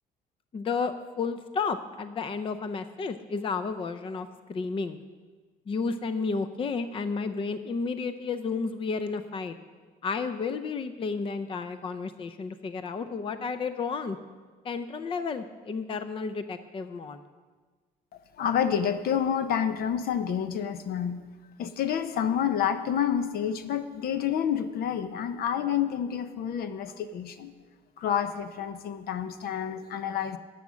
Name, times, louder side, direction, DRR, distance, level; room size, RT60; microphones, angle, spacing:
voice 1, 0.5-5.0 5.7-9.6 10.0-14.2 14.6-17.2, left 4 dB, 30° left, 11 dB, 0.6 m, -32 dB
voice 2, 18.4-21.2 21.6-27.5 28.0-30.4, left 8 dB, 65° left, 10 dB, 0.7 m, -28 dB
11.0 x 7.7 x 6.3 m, 1.4 s
cardioid pair, 110°, 17 cm